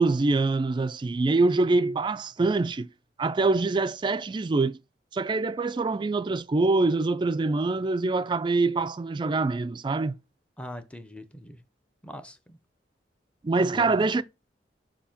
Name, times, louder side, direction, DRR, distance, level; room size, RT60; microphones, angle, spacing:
voice 1, 0.0-2.9 3.2-4.8 5.1-10.2 13.4-14.2, right 3 dB, 25° right, 0.3 m, -24 dB
voice 2, 10.6-11.6 12.0-12.6 13.6-14.1, equal, 5° left, 0.7 m, -41 dB
6.9 x 2.7 x 5.7 m
head